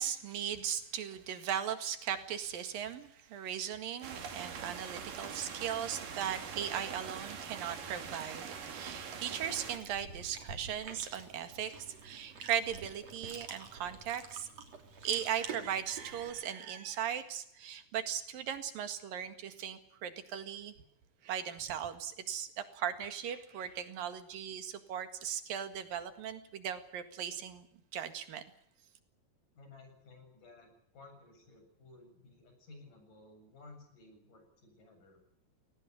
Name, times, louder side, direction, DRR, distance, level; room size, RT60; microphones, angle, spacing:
voice 1, 0.0-14.5 15.0-20.7 21.2-27.7 27.9-28.4, right 9 dB, 90° right, 9 dB, 3.7 m, -38 dB
sound 1, 4.0-9.8, right 6 dB, 75° right, 4.3 m, -43 dB
Chewing mastication, 9.4-16.3, right 5 dB, 50° right, 4.1 m, -48 dB
voice 2, 29.6-35.2, left 3 dB, 70° left, 5 dB, 9.1 m, -56 dB
20.0 x 18.5 x 9.5 m, 0.71 s
omnidirectional pair, 3.9 m